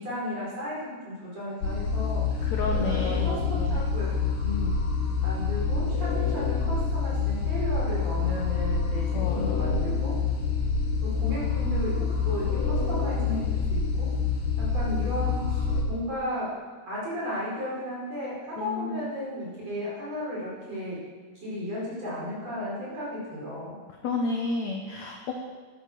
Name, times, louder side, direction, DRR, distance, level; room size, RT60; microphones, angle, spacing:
voice 1, 0.0-2.5 2.8-4.8 5.2-10.1 11.0-14.1 14.6-16.5 16.9-21.0 21.4-23.8, left 1 dB, 40° right, -6 dB, 6.0 m, -34 dB
sound 1, 1.6-15.8, left 5 dB, 85° left, 3.9 m, -27 dB
voice 2, 2.5-3.2 3.6-3.8 9.1-9.7 18.6-19.1 24.0-25.3, left 4 dB, 70° left, 2 dB, 1.8 m, -31 dB
12.5 x 8.9 x 7.4 m, 1.4 s
omnidirectional pair, 4.5 m